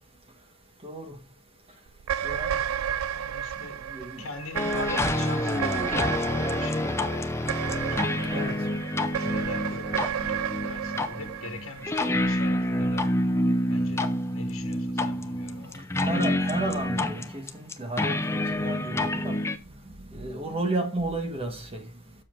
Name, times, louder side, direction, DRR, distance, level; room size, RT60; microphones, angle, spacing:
voice 1, 0.8-1.1 2.2-2.6 3.9-4.3 8.3-8.7 16.0-19.4 20.1-21.9, right 2 dB, 25° right, 1.2 m, -32 dB
sound 1, 2.0-12.5, right 9 dB, 75° right, 0.3 m, -33 dB
voice 2, 3.1-3.9 4.2-7.4 7.9-8.4 8.9-13.1 13.7-16.2, left 3 dB, 75° left, 1.4 m, -42 dB
sound 2, 4.5-19.6, left 1 dB, 15° left, 0.5 m, -28 dB
7.3 x 6.9 x 3.7 m
head